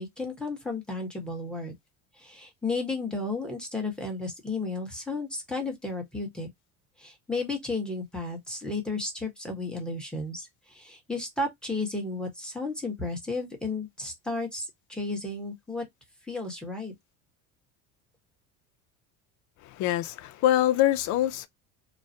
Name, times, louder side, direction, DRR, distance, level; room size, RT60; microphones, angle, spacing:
voice 1, 0.0-1.7 2.2-6.5 7.0-15.8 16.3-16.9, left 3 dB, ahead, 1.0 m, -33 dB
voice 2, 19.6-21.5, left 13 dB, 55° left, 0.5 m, -24 dB
3.1 x 2.1 x 2.6 m
cardioid pair, 130°, 35 cm